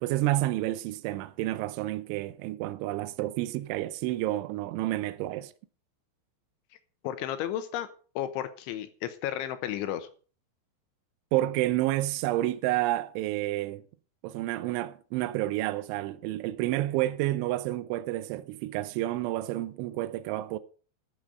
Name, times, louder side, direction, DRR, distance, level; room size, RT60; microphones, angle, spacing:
voice 1, 0.0-5.5 11.3-13.8 14.2-20.6, right 16 dB, 80° right, 3.0 m, -30 dB
voice 2, 7.0-7.9 8.2-10.1, left 11 dB, 80° left, 3.3 m, -33 dB
12.5 x 7.7 x 6.6 m
omnidirectional pair, 5.6 m